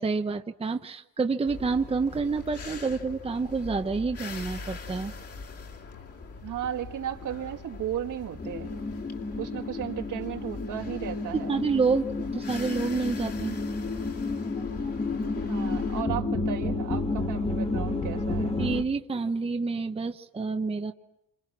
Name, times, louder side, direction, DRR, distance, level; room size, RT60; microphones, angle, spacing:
voice 1, 0.0-5.1 11.3-12.1 12.3-13.6 18.6-20.9, right 4 dB, 15° right, 5 dB, 0.9 m, -28 dB
sound 1, 1.5-16.0, left 4 dB, 40° left, 2.8 m, -41 dB
voice 2, 6.4-8.8 9.4-11.6 15.3-18.7, right 10 dB, 55° right, 4 dB, 1.9 m, -35 dB
sound 2, 8.4-18.8, left 3 dB, 15° left, 1.6 m, -31 dB
29.5 x 27.5 x 6.1 m, 0.83 s
cardioid pair, 160°, 36 cm